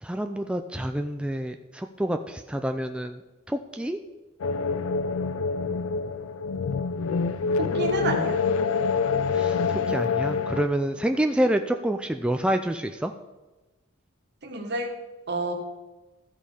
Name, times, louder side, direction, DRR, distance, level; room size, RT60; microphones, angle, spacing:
voice 1, 0.0-3.2 3.5-4.0 9.3-13.1, right 1 dB, 5° right, 6 dB, 0.3 m, -27 dB
sound 1, 4.4-10.6, left 5 dB, 80° left, 0.5 m, -26 dB
voice 2, 7.6-8.4 14.4-14.9 15.3-15.5, right 2 dB, 55° right, 3 dB, 1.6 m, -29 dB
14.0 x 5.3 x 5.0 m, 1.1 s
head